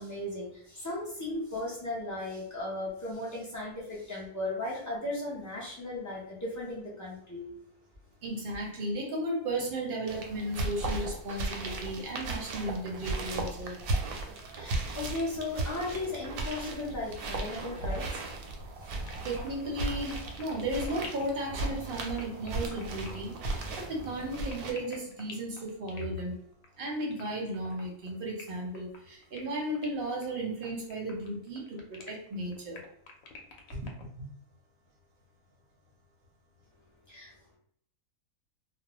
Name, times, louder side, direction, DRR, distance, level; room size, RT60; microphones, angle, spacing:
voice 1, 0.0-7.5 14.5-18.2 18.8-19.0 37.1-37.6, left 2 dB, 30° left, -6 dB, 0.3 m, -36 dB
voice 2, 8.2-13.8 19.2-26.3 26.8-32.8 33.7-34.3, right 1 dB, 50° right, -1 dB, 0.7 m, -35 dB
sound 1, 10.1-24.7, right 2 dB, 85° right, 1.1 m, -36 dB
sound 2, 19.1-34.0, left 4 dB, 70° left, 0.9 m, -49 dB
2.4 x 2.0 x 2.9 m, 0.66 s
omnidirectional pair, 1.5 m